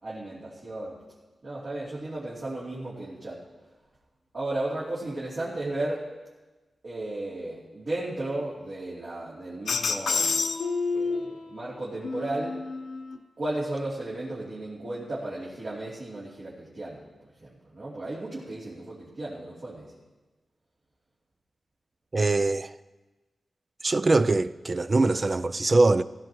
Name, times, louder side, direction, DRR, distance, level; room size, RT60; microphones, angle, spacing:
voice 1, 0.0-1.0 1.4-3.4 4.3-6.0 6.8-10.4 10.9-12.6 13.4-17.0 17.4-19.8, right 2 dB, 60° right, 3.2 m, -34 dB
sound 1, 9.7-11.4 12.0-13.2, left 4 dB, 80° left, 0.8 m, -28 dB
voice 2, 22.1-22.7 23.8-26.0, right 2 dB, 40° right, 0.4 m, -22 dB
16.0 x 15.5 x 3.1 m
cardioid pair, 75°, 0 cm